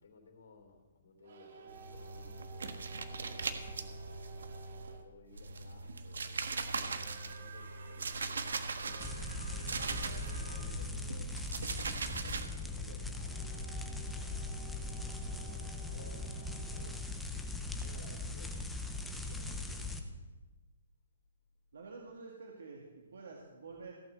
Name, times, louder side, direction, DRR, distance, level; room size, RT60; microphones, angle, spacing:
voice 1, 0.0-2.9 3.3-8.2 8.8-9.6 10.2-14.4 15.1-20.2, left 4 dB, 65° left, 3 dB, 3.2 m, -59 dB
sound 1, 1.2-5.1 6.7-10.9 13.2-18.1, right 5 dB, 45° right, 1.6 m, -54 dB
sound 2, 1.7-5.0 5.3-10.4 10.7-12.5, right 4 dB, 90° right, 1.3 m, -40 dB
sound 3, 9.0-20.0, left 2 dB, ahead, 0.6 m, -40 dB
voice 2, 21.7-23.9, right 4 dB, 65° right, -1 dB, 2.0 m, -49 dB
16.0 x 5.9 x 7.7 m, 1.2 s
hypercardioid pair, 180°, 0 cm